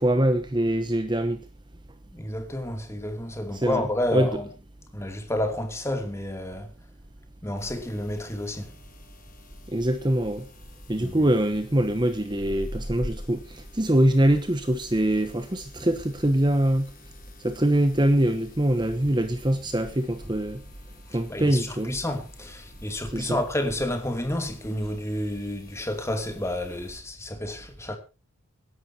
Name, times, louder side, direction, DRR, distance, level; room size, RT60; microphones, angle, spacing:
voice 1, 0.0-1.4 3.5-3.8 4.1-4.3 9.7-10.5 10.9-16.9 17.4-20.6 21.1-21.9 23.1-23.4, right 1 dB, 20° right, 1.0 m, -23 dB
voice 2, 2.1-4.5 4.9-6.7 7.4-8.7 11.0-11.3 21.1-28.0, left 1 dB, 10° left, 2.6 m, -30 dB
sound 1, 7.6-27.0, equal, 40° left, 4.8 m, -45 dB
25.5 x 11.0 x 2.8 m
head